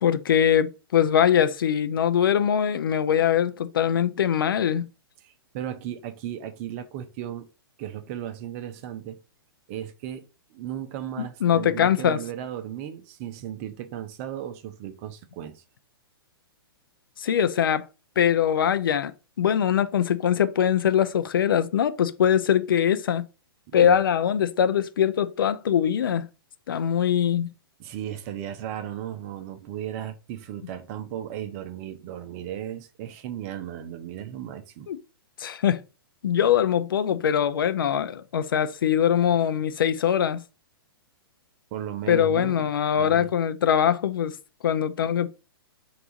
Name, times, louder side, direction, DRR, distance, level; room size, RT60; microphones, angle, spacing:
voice 1, 0.0-4.9 11.2-12.2 17.2-17.9 18.2-23.3 23.7-26.3 26.7-27.5 34.9-35.0 35.4-35.8 36.2-40.4 42.1-44.3 44.6-45.3, left 9 dB, 60° left, 0.4 m, -22 dB
voice 2, 5.2-7.5 7.8-9.2 9.7-15.6 23.7-24.0 27.8-34.9 41.7-43.3, right 11 dB, 35° right, 0.6 m, -36 dB
3.3 x 2.5 x 3.9 m
figure-of-eight pair, 115°, 13 cm